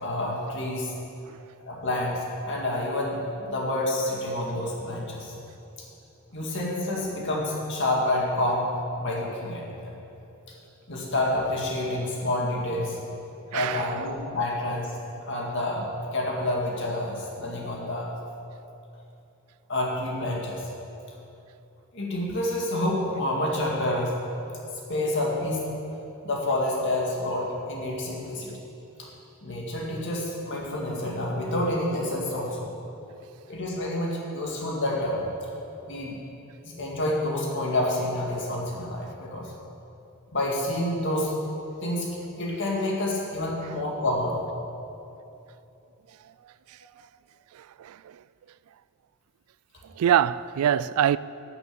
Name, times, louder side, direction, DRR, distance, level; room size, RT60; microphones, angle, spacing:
voice 1, 0.0-0.9 1.7-5.3 6.3-8.7 9.0-9.7 10.9-13.0 13.5-14.9 15.2-15.9 16.1-18.1 19.7-20.6 21.9-24.2 24.9-25.7 26.2-28.5 29.0-29.1 29.4-32.7 33.5-35.2 35.8-36.2 36.6-39.5 40.3-41.3 41.8-42.1 42.4-44.4, left 1 dB, 55° left, 2.0 m, -28 dB
voice 2, 13.5-13.9 47.8-48.0 50.0-51.2, right 9 dB, 75° right, 0.3 m, -23 dB
12.0 x 6.9 x 6.9 m
head